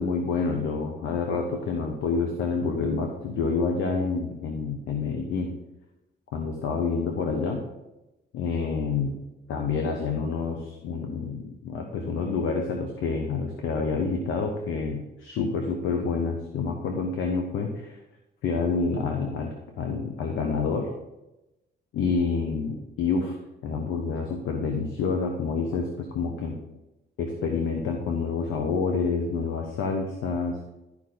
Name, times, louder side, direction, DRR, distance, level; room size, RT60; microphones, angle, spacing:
voice 1, 0.0-5.5 6.3-7.6 8.3-9.1 9.5-18.0 18.4-20.9 21.9-26.6 27.2-30.7, left 4 dB, 85° left, 3 dB, 1.1 m, -28 dB
12.0 x 4.9 x 3.9 m, 0.96 s
cardioid pair, 90°, 20 cm